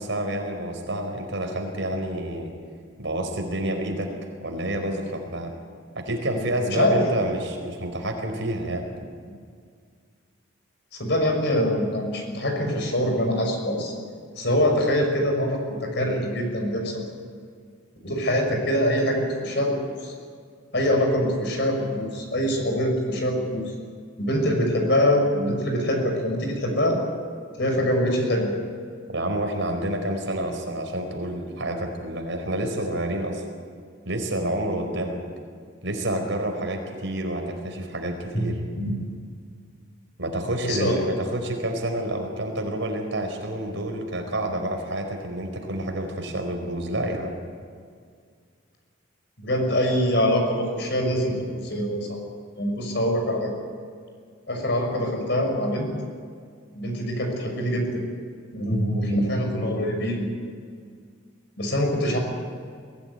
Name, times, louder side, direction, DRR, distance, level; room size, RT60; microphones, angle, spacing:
voice 1, 0.0-2.5 3.0-4.1 4.4-5.5 5.9-8.9 29.1-33.4 34.1-35.2 35.8-38.6 40.2-47.3, right 1 dB, 65° right, 3 dB, 4.6 m, -28 dB
voice 2, 6.7-7.0 11.0-13.9 14.3-17.0 18.0-20.1 20.7-23.7 24.2-27.0 27.6-28.5 38.3-38.9 40.6-40.9 49.4-52.2 52.6-53.5 54.5-55.9 56.7-58.0 58.5-60.3 61.6-62.2, equal, 55° left, 2 dB, 5.9 m, -24 dB
23.0 x 16.0 x 9.7 m, 2.1 s
head